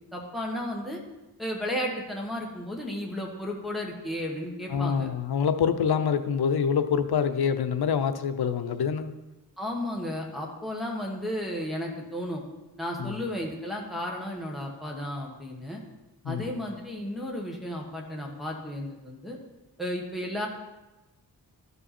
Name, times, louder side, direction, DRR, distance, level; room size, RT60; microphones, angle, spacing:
voice 1, 0.1-1.0 1.4-5.1 9.6-12.4 12.8-15.8 16.2-19.4 19.8-20.5, left 1 dB, ahead, -2 dB, 1.3 m, -33 dB
voice 2, 4.7-9.1 13.0-13.2 16.2-16.6, left 7 dB, 90° left, 10 dB, 0.7 m, -26 dB
12.5 x 5.5 x 4.2 m, 1.1 s
wide cardioid pair, 165°, 37 cm